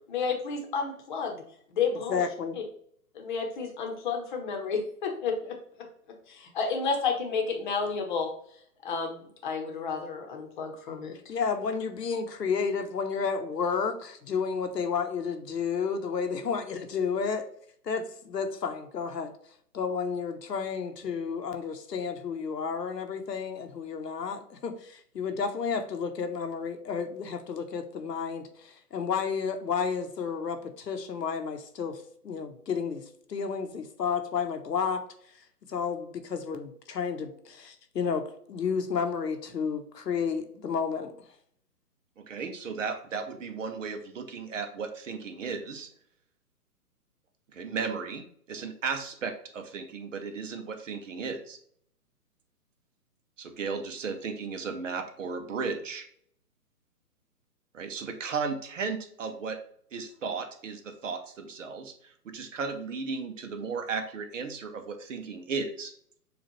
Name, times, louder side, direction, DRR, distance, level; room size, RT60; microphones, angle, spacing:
voice 1, 0.1-1.4 1.7-2.2 3.1-5.6 6.3-8.3 8.8-11.1, left 5 dB, 30° left, 3 dB, 0.9 m, -31 dB
voice 2, 2.1-2.6 11.3-17.5 17.8-19.3 19.7-35.0 35.7-41.1, left 6 dB, 80° left, 7 dB, 0.9 m, -31 dB
voice 3, 42.2-45.9 47.5-48.2 48.5-51.6 53.4-56.1 57.7-59.6 59.9-65.9, right 5 dB, 50° right, 7 dB, 0.8 m, -35 dB
6.9 x 2.4 x 3.1 m, 0.64 s
figure-of-eight pair, 140°, 48 cm